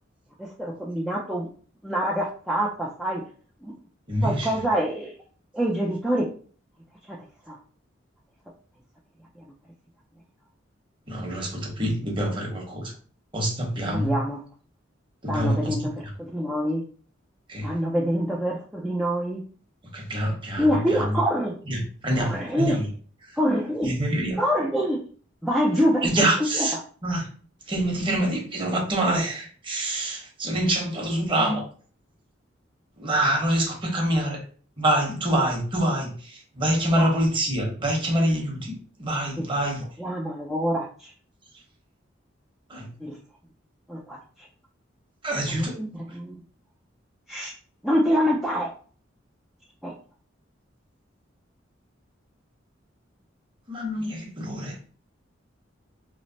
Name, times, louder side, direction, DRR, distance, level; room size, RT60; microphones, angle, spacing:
voice 1, 0.4-1.5 1.8-3.2 3.6-3.8 4.2-5.1 5.5-6.3 7.1-7.2 7.5-7.6 9.4-9.5 13.9-14.4 15.3-16.8 17.6-19.4 20.6-21.6 22.2-22.8 23.4-23.9 24.4-25.1 25.4-26.1 26.4-26.7 37.0-37.1 39.4-39.5 40.0-41.1 43.0-43.2 43.9-44.5 45.5-46.4 47.3-47.5 47.8-48.7 49.8-49.9, equal, ahead, -4 dB, 0.4 m, -26 dB
voice 2, 4.1-4.6 11.1-12.9 13.3-14.1 15.2-15.8 16.0-16.1 17.5-17.7 19.9-21.2 21.6-22.9 23.2-23.4 23.8-24.4 26.0-26.8 27.0-27.3 27.7-31.6 33.0-34.4 34.8-39.9 42.7-42.9 45.2-45.7 46.1-46.2 53.7-54.8, right 1 dB, 25° right, -1 dB, 1.0 m, -26 dB
3.1 x 2.0 x 3.8 m, 0.43 s
head